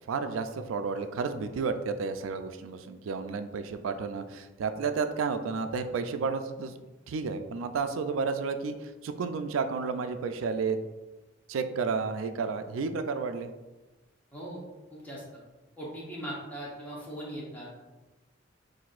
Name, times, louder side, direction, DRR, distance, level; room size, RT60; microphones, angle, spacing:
voice 1, 0.0-6.7 7.1-10.8 11.5-13.5, right 5 dB, 90° right, 9 dB, 0.4 m, -31 dB
voice 2, 14.9-15.2 15.8-17.7, right 1 dB, 10° left, -6 dB, 0.9 m, -39 dB
5.9 x 2.6 x 2.4 m, 1.1 s
head